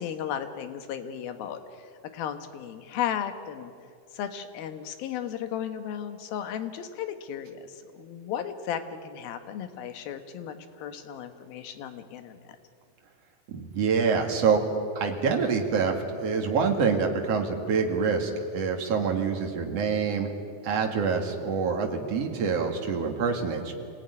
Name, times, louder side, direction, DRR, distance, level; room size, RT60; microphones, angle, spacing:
voice 1, 0.0-3.7 4.1-12.4, left 9 dB, 85° left, 8 dB, 3.2 m, -35 dB
voice 2, 13.5-14.6 15.0-20.3 20.6-23.7, right 5 dB, 45° right, 3 dB, 3.0 m, -26 dB
26.0 x 17.5 x 9.8 m, 2.4 s
omnidirectional pair, 4.2 m